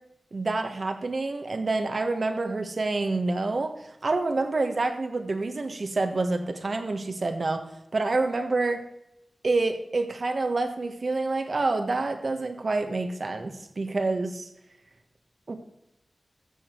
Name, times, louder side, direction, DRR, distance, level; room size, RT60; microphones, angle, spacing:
voice 1, 0.3-3.7 4.0-7.7 7.9-8.8 9.4-14.5 15.5-15.6, right 3 dB, 60° right, 7 dB, 1.4 m, -27 dB
13.5 x 7.4 x 4.6 m, 0.86 s
cardioid pair, 55°, 0 cm